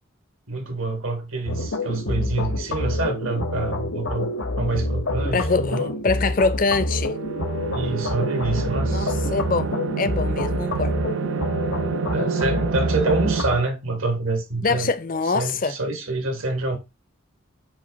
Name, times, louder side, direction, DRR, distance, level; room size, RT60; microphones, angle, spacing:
voice 1, 0.5-5.9 7.7-9.1 12.1-14.9 15.3-16.8, right 3 dB, 85° right, 2.1 m, -27 dB
sound 1, 1.5-13.6, left 1 dB, 90° left, 1.6 m, -27 dB
voice 2, 5.3-7.1 8.9-11.0 14.6-15.7, left 4 dB, 40° left, 0.6 m, -24 dB
sound 2, 6.8-13.4, right 6 dB, 65° right, 0.4 m, -28 dB
8.9 x 3.1 x 5.1 m
head